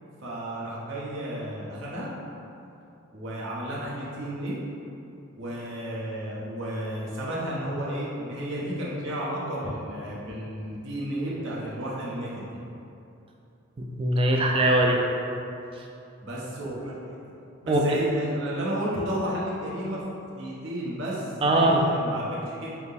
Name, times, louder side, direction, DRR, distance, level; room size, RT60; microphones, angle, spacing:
voice 1, 0.2-2.1 3.1-4.6 5.4-12.5 16.2-17.2 17.6-20.0 20.3-22.7, equal, 65° right, -6 dB, 0.9 m, -32 dB
voice 2, 13.8-15.0 17.7-18.0 21.4-21.8, right 1 dB, 25° right, 0 dB, 0.3 m, -21 dB
5.8 x 2.0 x 3.5 m, 2.7 s
head